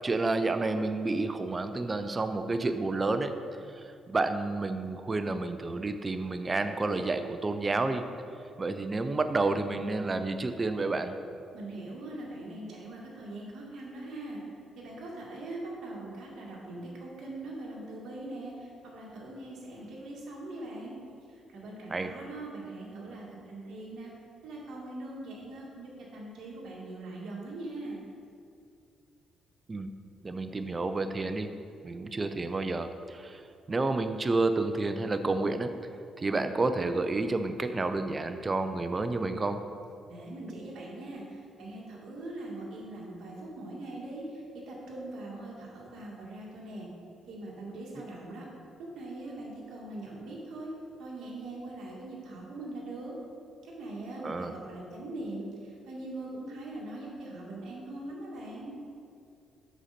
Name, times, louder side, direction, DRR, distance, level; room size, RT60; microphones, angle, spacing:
voice 1, 0.0-3.3 3.7-8.0 8.6-11.2 21.9-22.1 29.7-29.9 30.2-31.5 31.8-35.7 36.2-39.6 54.2-54.6, right 3 dB, 25° right, 9 dB, 0.5 m, -30 dB
voice 2, 11.5-14.4 14.8-20.9 21.5-24.1 24.4-28.0 40.1-46.9 47.3-48.5 48.8-50.7 51.0-53.2 53.6-58.7, right 2 dB, 70° right, -4 dB, 2.1 m, -41 dB
8.0 x 6.4 x 4.3 m, 2.4 s
cardioid pair, 90°, 0 cm